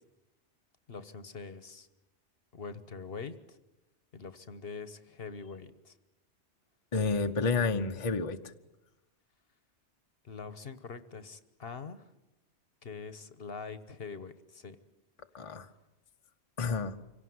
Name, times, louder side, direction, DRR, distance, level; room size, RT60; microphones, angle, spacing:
voice 1, 0.9-1.9 2.5-3.6 4.1-5.9 10.2-12.0 12.8-14.8, left 5 dB, 55° left, 12 dB, 1.3 m, -44 dB
voice 2, 6.9-8.4 15.3-15.7 16.6-17.0, left 4 dB, 30° left, 6 dB, 0.9 m, -30 dB
25.5 x 17.5 x 9.5 m, 1.0 s
omnidirectional pair, 1.2 m